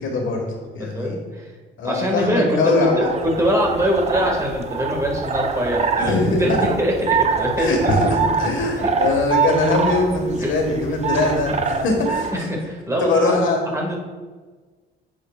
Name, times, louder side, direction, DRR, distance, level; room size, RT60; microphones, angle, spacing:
voice 1, 0.0-0.4 0.7-1.2 1.8-3.1 6.0-6.7 7.6-12.3 13.0-13.6, left 2 dB, 75° left, 2 dB, 1.7 m, -21 dB
voice 2, 0.8-1.5 1.8-7.9 8.8-8.9 10.4-10.5 12.3-13.3 13.7-14.0, equal, 15° right, -1 dB, 1.9 m, -23 dB
sound 1, 2.7-12.4, right 5 dB, 35° right, 0.7 m, -25 dB
9.1 x 6.3 x 2.4 m, 1.4 s
cardioid pair, 90°, 20 cm